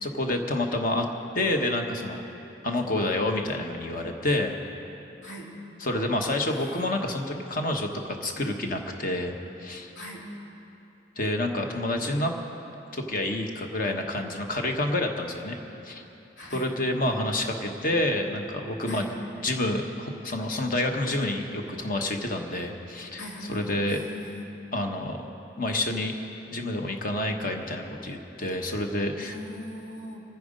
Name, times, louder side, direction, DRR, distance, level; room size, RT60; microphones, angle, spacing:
voice 1, 0.0-1.1 1.3-2.2 2.6-4.5 5.8-9.3 9.6-9.9 11.2-12.3 12.9-15.6 15.8-16.0 16.5-19.1 19.4-24.0 24.7-25.3 25.6-26.1 26.5-29.4, left 1 dB, 50° left, 4 dB, 1.2 m, -28 dB
voice 2, 16.4-16.7 18.9-19.1 23.2-24.4 29.2-30.2, equal, 80° left, -4 dB, 3.1 m, -40 dB
24.5 x 9.4 x 5.2 m, 2.9 s
head